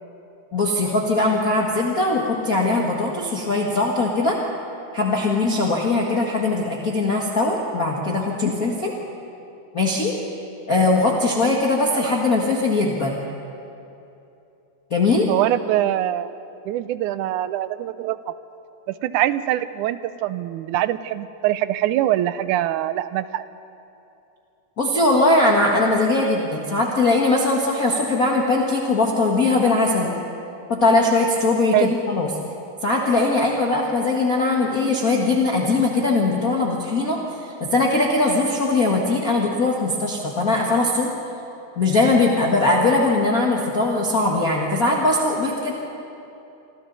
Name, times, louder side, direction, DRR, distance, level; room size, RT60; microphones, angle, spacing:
voice 1, 0.5-4.4 4.9-8.9 9.7-10.1 10.7-13.2 14.9-15.3 24.8-30.1 30.7-32.3 32.8-37.2 37.6-41.1 41.8-45.7, left 2 dB, 35° left, -2 dB, 1.6 m, -20 dB
voice 2, 15.3-16.3 16.7-18.4 18.9-23.4 31.7-31.9, right 13 dB, 80° right, 13 dB, 2.1 m, -23 dB
27.0 x 26.0 x 4.1 m, 2.8 s
omnidirectional pair, 3.7 m